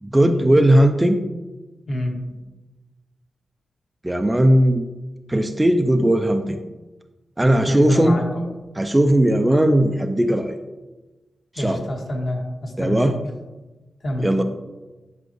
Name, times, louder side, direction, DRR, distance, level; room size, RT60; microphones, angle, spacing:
voice 1, 0.0-1.2 4.0-4.9 5.3-6.6 7.4-8.2 8.8-10.6 11.5-11.9 12.8-13.2 14.2-14.4, right 1 dB, 10° right, 7 dB, 0.4 m, -17 dB
voice 2, 1.9-2.2 7.4-8.2 11.6-13.1 14.0-14.3, left 1 dB, 50° left, 0 dB, 1.5 m, -27 dB
10.5 x 5.5 x 3.0 m, 1.2 s
wide cardioid pair, 130°, 0 cm